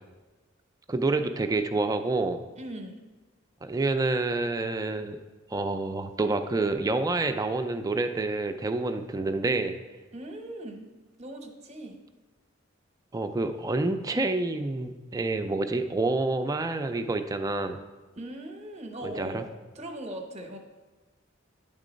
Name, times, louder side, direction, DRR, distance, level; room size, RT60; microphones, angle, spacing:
voice 1, 0.9-2.4 3.6-5.2 5.5-9.8 13.1-17.8 19.0-19.4, right 2 dB, 20° right, 8 dB, 0.3 m, -28 dB
voice 2, 2.6-3.0 10.1-10.9 11.2-12.0 18.2-20.6, right 1 dB, 35° right, 5 dB, 0.8 m, -39 dB
9.8 x 3.7 x 5.1 m, 1.2 s
head